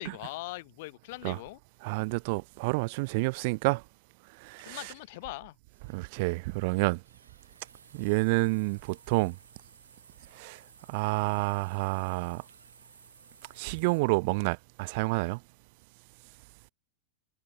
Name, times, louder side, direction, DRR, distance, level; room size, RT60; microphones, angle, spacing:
voice 1, 0.0-1.6 4.6-5.6, left 21 dB, 50° left, 1.6 m, -41 dB
voice 2, 1.8-3.8 4.4-4.9 5.9-7.0 7.9-9.4 10.3-10.6 10.9-12.4 13.6-15.4, right 27 dB, 50° right, 0.7 m, -29 dB
sound 1, 5.7-6.1 7.0-14.0, right 4 dB, 75° right, 4.4 m, -58 dB
figure-of-eight pair, 90°, 0 cm